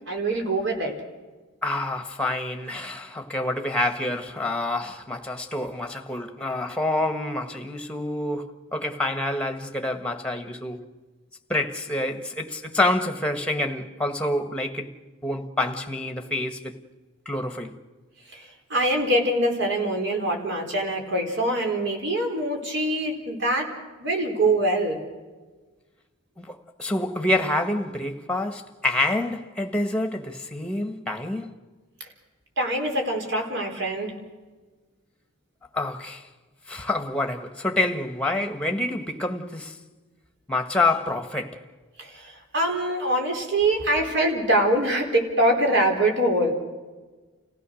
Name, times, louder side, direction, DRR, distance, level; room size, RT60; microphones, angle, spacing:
voice 1, 0.1-0.9 18.3-23.7 24.0-25.0 32.0-32.1 32.6-34.1 42.0-46.5, right 1 dB, 55° right, 4.3 m, -24 dB
voice 2, 1.6-10.8 11.5-14.9 15.2-16.8 17.2-17.8 26.4-31.6 35.7-36.3 36.7-39.8 40.5-41.6, left 2 dB, 5° left, 1.4 m, -27 dB
30.0 x 16.5 x 6.4 m
head